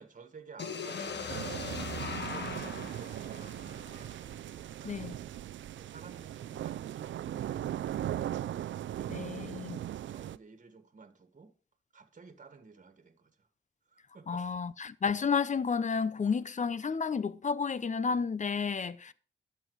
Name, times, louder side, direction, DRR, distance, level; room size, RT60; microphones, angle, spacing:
voice 1, 0.0-4.1 4.8-5.3 5.7-8.3 8.9-11.5 11.9-13.5 13.9-14.5, right 5 dB, 40° right, 1.8 m, -54 dB
sound 1, 0.6-4.5, left 5 dB, 65° left, 1.6 m, -40 dB
sound 2, 1.3-10.4, right 12 dB, 85° right, 0.5 m, -38 dB
voice 2, 4.8-5.2 9.1-9.8 14.3-19.1, left 5 dB, 40° left, 0.7 m, -31 dB
11.5 x 7.6 x 4.8 m
cardioid pair, 70°, 19 cm